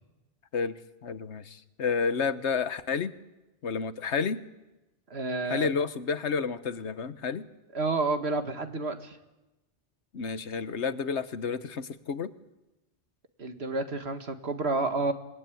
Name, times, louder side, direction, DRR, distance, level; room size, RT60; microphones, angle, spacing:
voice 1, 0.5-3.1 3.6-4.4 5.5-7.5 10.1-12.3, left 5 dB, 85° left, 13 dB, 1.4 m, -30 dB
voice 2, 5.1-5.7 7.7-9.2 13.4-15.1, right 3 dB, 70° right, 7 dB, 2.0 m, -30 dB
26.5 x 20.0 x 9.3 m, 1.0 s
omnidirectional pair, 1.1 m